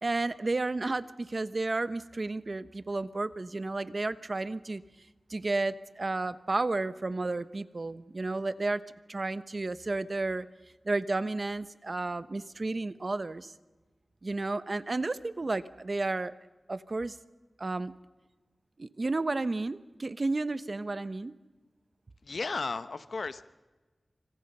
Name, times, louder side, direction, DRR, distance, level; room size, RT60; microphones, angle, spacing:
voice 1, 0.0-4.8 5.3-8.8 9.1-10.5 10.8-13.5 14.2-16.3 16.7-17.2 17.6-17.9 18.8-21.3, right 2 dB, 55° right, 13 dB, 1.0 m, -32 dB
voice 2, 22.2-23.4, left 4 dB, 80° left, 12 dB, 1.0 m, -34 dB
26.5 x 26.0 x 5.6 m, 1.2 s
wide cardioid pair, 50°, 0 cm